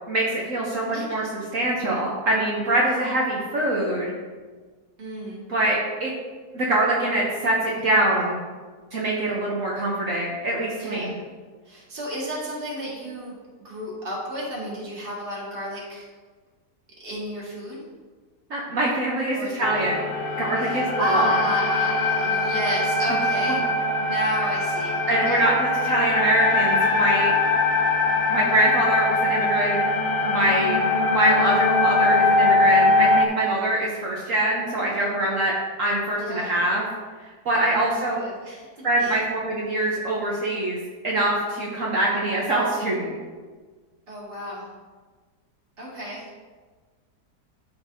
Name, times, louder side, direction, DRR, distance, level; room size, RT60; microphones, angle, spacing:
voice 1, 0.1-1.2 1.5-4.1 5.5-6.1 6.5-8.4 8.9-11.1 18.5-20.1 20.4-21.3 25.1-27.4 28.3-29.8 30.2-30.8 31.1-35.5 35.8-36.8 37.2-38.2 38.8-40.8 41.0-43.2, right 1 dB, 55° right, -4 dB, 1.2 m, -24 dB
voice 2, 0.9-1.5 2.8-3.0 5.0-5.4 10.8-11.2 11.6-13.4 13.6-16.1 17.0-17.8 19.3-19.6 20.6-23.7 24.0-25.4 36.1-36.6 37.7-38.7 39.0-39.2 44.1-44.7 45.8-46.3, equal, 35° right, -6 dB, 1.9 m, -32 dB
sound 1, 19.6-33.3, left 2 dB, 90° left, 0.5 m, -22 dB
12.0 x 4.4 x 2.7 m, 1.4 s
omnidirectional pair, 1.8 m